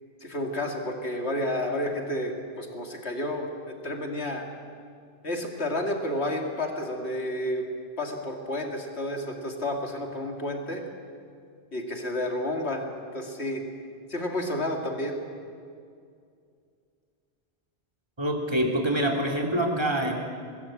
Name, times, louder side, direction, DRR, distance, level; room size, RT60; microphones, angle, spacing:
voice 1, 0.2-4.5 5.2-7.7 8.0-10.8 11.7-12.9 13.1-13.6 14.1-15.2, left 1 dB, 70° left, 2 dB, 2.9 m, -31 dB
voice 2, 18.2-20.1, right 1 dB, 25° right, 1 dB, 3.2 m, -25 dB
24.0 x 20.0 x 8.7 m, 2.3 s
omnidirectional pair, 1.1 m